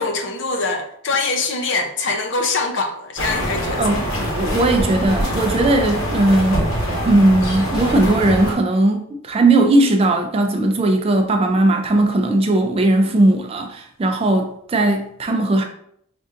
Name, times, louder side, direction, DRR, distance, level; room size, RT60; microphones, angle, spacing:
voice 1, 0.0-3.9, left 3 dB, 55° left, 0.5 m, -23 dB
sound 1, 3.2-8.5, equal, 85° left, 1.3 m, -24 dB
voice 2, 3.8-6.7 7.0-15.6, right 2 dB, 25° right, 0.3 m, -18 dB
5.2 x 2.5 x 2.5 m
head